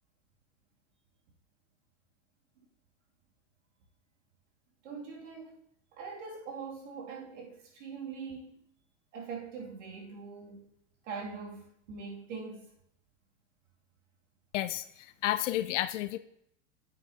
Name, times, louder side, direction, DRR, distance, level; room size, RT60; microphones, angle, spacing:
voice 1, 4.8-5.6 5.9-8.7 9.1-10.7 11.0-12.7, right 5 dB, 80° right, 2.7 m, -42 dB
voice 2, 14.5-14.9 15.2-16.2, left 14 dB, 80° left, 0.6 m, -30 dB
9.1 x 8.0 x 2.9 m
supercardioid pair, 125°, 37 cm